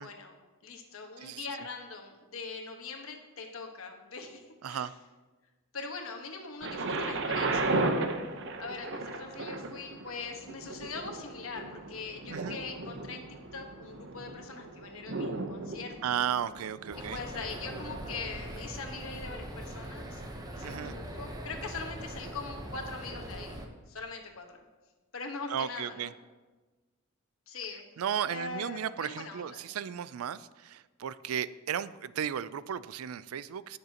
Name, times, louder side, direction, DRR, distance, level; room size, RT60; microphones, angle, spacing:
voice 1, 0.0-4.9 5.7-8.0 8.6-13.2 13.5-16.2 16.9-20.2 20.5-23.6 23.9-24.6 25.1-26.1 27.5-27.8 28.3-29.7, left 4 dB, 75° left, 4 dB, 1.3 m, -42 dB
Thunder, 6.6-18.5 19.2-19.3, right 2 dB, 60° right, 0.8 m, -35 dB
voice 2, 16.0-17.2 20.6-20.9 25.5-26.1 28.0-33.8, right 9 dB, 85° right, 17 dB, 0.4 m, -34 dB
sound 1, 16.9-23.7, right 1 dB, 20° right, 0.9 m, -41 dB
18.0 x 6.6 x 2.9 m, 1.2 s
head